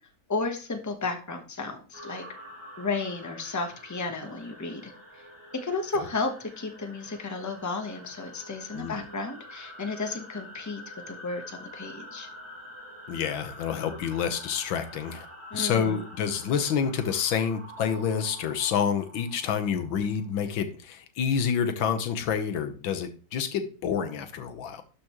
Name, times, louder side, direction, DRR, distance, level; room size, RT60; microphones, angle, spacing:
voice 1, 0.3-2.2 2.8-5.2 5.6-10.8 11.1-12.3 15.5-16.1, left 3 dB, 15° left, 5 dB, 0.5 m, -33 dB
sound 1, 1.9-20.6, equal, 10° right, 1.4 m, -47 dB
voice 2, 13.1-15.3 15.5-24.8, left 7 dB, 80° left, 8 dB, 1.7 m, -28 dB
12.0 x 5.1 x 3.0 m, 0.37 s
omnidirectional pair, 2.2 m